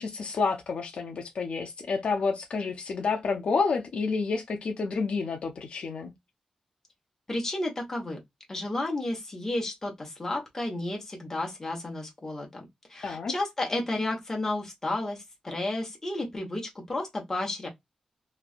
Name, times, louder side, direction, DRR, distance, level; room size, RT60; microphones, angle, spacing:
voice 1, 0.0-6.1 13.0-13.3, left 4 dB, 60° left, 0.5 m, -29 dB
voice 2, 7.3-8.2 8.5-12.6 12.9-17.7, left 2 dB, 20° left, 1.1 m, -32 dB
3.1 x 2.5 x 2.4 m
wide cardioid pair, 170°, 2 cm